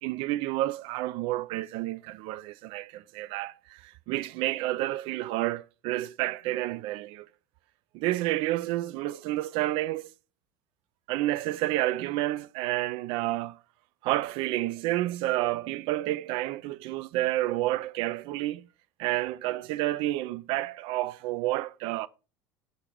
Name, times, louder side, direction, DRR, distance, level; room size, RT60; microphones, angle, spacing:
voice 1, 0.0-7.3 7.9-10.1 11.1-13.6 14.0-18.7 19.0-22.1, right 16 dB, 45° right, 0.4 m, -30 dB
6.3 x 3.9 x 4.9 m
figure-of-eight pair, 70°, 13 cm